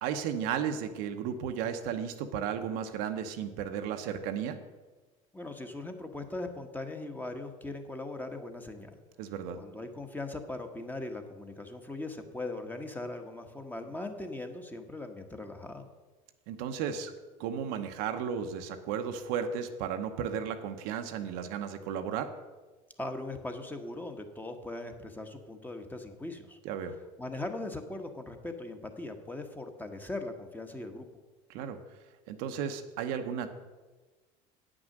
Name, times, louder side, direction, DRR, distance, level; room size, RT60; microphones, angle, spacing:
voice 1, 0.0-4.6 9.2-9.6 16.5-17.1 17.4-22.3 26.6-27.0 31.5-31.8 32.3-33.5, right 8 dB, 80° right, 6 dB, 0.8 m, -34 dB
voice 2, 5.3-9.0 9.6-15.9 23.0-26.6 27.2-31.1, left 2 dB, 10° left, 5 dB, 1.1 m, -40 dB
8.6 x 6.2 x 6.5 m, 1.3 s
supercardioid pair, 85°, 17 cm